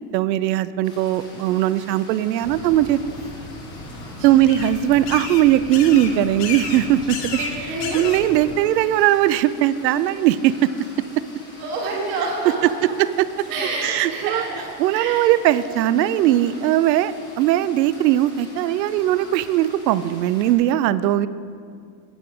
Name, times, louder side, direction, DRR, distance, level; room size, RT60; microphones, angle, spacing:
voice 1, 0.1-3.0 4.2-7.2 7.9-10.7 13.0-13.3 13.8-14.4 14.8-21.3, right 12 dB, 85° right, 16 dB, 0.6 m, -19 dB
sound 1, 0.8-20.6, left 1 dB, 10° left, 0.4 m, -44 dB
sound 2, 2.4-8.6, left 4 dB, 70° left, 1.4 m, -33 dB
voice 2, 7.4-8.0 11.6-12.9 13.5-15.2 15.6-16.0, right 3 dB, 50° right, -3 dB, 2.5 m, -28 dB
8.8 x 8.1 x 4.8 m, 2.3 s
supercardioid pair, 170°, 49 cm